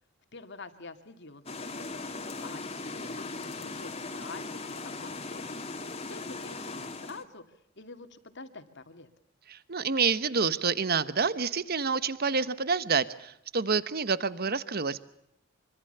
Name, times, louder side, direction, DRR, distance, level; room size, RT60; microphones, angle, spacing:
voice 1, 0.3-5.6 6.1-9.1, left 3 dB, 60° left, 8 dB, 2.5 m, -47 dB
sound 1, 1.5-7.2, left 3 dB, 30° left, 2.5 m, -38 dB
voice 2, 9.5-15.0, right 5 dB, 50° right, 15 dB, 1.1 m, -28 dB
25.5 x 24.5 x 6.8 m, 0.77 s
head